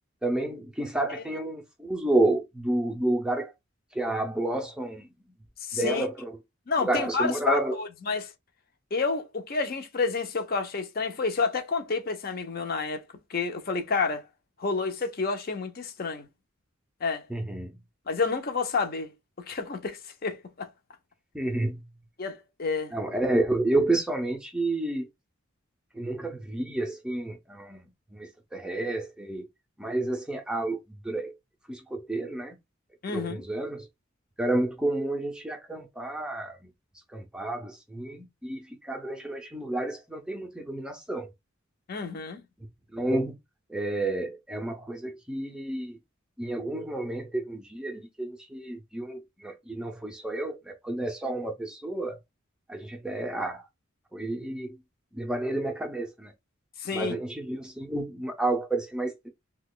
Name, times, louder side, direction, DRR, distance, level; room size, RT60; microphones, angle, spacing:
voice 1, 0.2-3.5 3.9-5.1 5.7-6.4 6.8-7.7 17.3-17.7 21.3-21.8 22.9-25.1 25.9-27.8 28.1-29.5 29.8-30.8 31.0-31.3 31.7-32.6 33.1-33.8 34.4-36.6 37.1-41.3 42.9-43.4 43.7-46.0 46.4-52.2 52.7-53.6 54.1-54.8 55.1-56.3 56.9-59.3, right 2 dB, 5° right, 0.5 m, -30 dB
voice 2, 5.7-6.0 6.7-8.3 8.9-13.0 13.3-14.2 14.6-16.3 17.0-17.3 18.1-19.1 19.5-20.7 22.2-22.9 33.0-33.4 41.9-42.4 56.8-57.2, left 4 dB, 45° left, 0.6 m, -29 dB
2.8 x 2.2 x 3.7 m
head